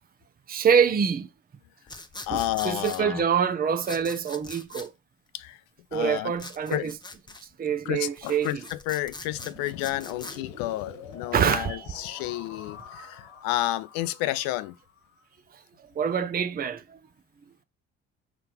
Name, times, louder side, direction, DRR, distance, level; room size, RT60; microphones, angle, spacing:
voice 1, 0.5-1.3 2.3-4.9 5.9-6.9 7.6-8.6 11.3-11.8 16.0-17.0, right 7 dB, 25° right, 0.7 m, -25 dB
sound 1, 1.9-3.0 3.8-4.9 6.4-7.4 8.1-10.4, left 2 dB, 10° left, 0.9 m, -42 dB
voice 2, 2.3-3.2 5.3-5.6 5.9-6.3 6.7-6.9 7.8-14.7, left 16 dB, 65° left, 0.7 m, -31 dB
sound 2, 9.3-15.2, left 4 dB, 90° left, 1.7 m, -47 dB
6.0 x 3.3 x 5.8 m
hypercardioid pair, 50°, 37 cm